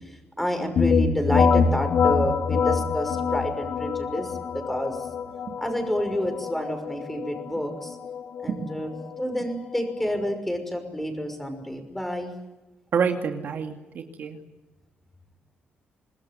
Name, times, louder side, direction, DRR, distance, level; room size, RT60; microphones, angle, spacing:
voice 1, 0.4-5.0 5.6-8.0 8.4-8.9 9.2-12.3, equal, 5° left, 6 dB, 5.9 m, -29 dB
sound 1, 0.8-10.3, left 5 dB, 65° left, 2.8 m, -25 dB
voice 2, 12.9-14.4, right 6 dB, 60° right, 4 dB, 2.5 m, -28 dB
27.0 x 20.0 x 9.5 m, 1.1 s
cardioid pair, 135°, 4 cm